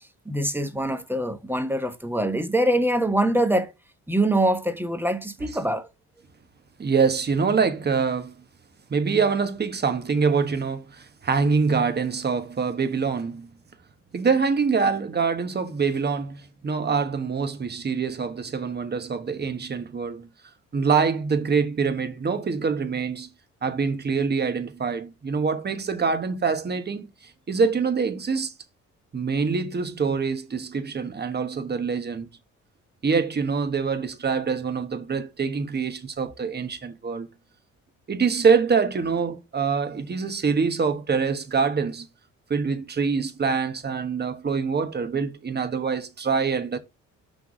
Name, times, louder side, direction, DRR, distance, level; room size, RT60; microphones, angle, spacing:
voice 1, 0.3-3.7 4.1-5.9, right 1 dB, 5° right, 1.0 m, -24 dB
voice 2, 6.8-8.3 8.9-13.5 14.1-20.3 20.7-23.3 23.6-28.5 29.1-32.3 33.0-37.3 38.1-42.1 42.5-46.8, right 5 dB, 35° right, 1.2 m, -25 dB
5.9 x 3.6 x 5.9 m
cardioid pair, 90°, 30 cm